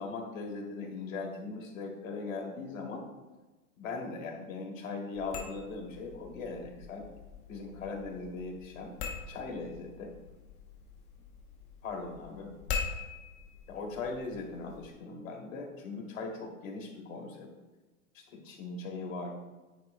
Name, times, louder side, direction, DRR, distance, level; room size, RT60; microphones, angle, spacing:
voice 1, 0.0-3.1 3.8-7.1 7.5-8.9 9.3-10.1 11.8-12.5 13.7-17.5 18.1-19.3, left 3 dB, 60° left, 1 dB, 1.7 m, -39 dB
sound 1, 5.1-14.9, left 5 dB, 15° left, 0.3 m, -43 dB
9.2 x 4.4 x 2.5 m, 1.2 s
hypercardioid pair, 120°, 44 cm